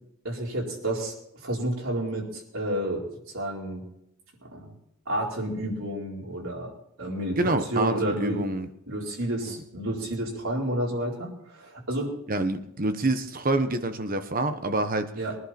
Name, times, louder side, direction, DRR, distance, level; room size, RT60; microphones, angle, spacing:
voice 1, 0.2-1.1 1.4-3.8 4.5-4.7 5.1-6.7 7.0-8.4 8.9-12.1 15.1-15.4, right 1 dB, 70° right, -2 dB, 4.3 m, -30 dB
voice 2, 7.4-8.7 9.5-9.6 12.3-15.1, right 2 dB, 40° right, 9 dB, 1.1 m, -27 dB
22.5 x 11.0 x 4.4 m, 0.77 s
head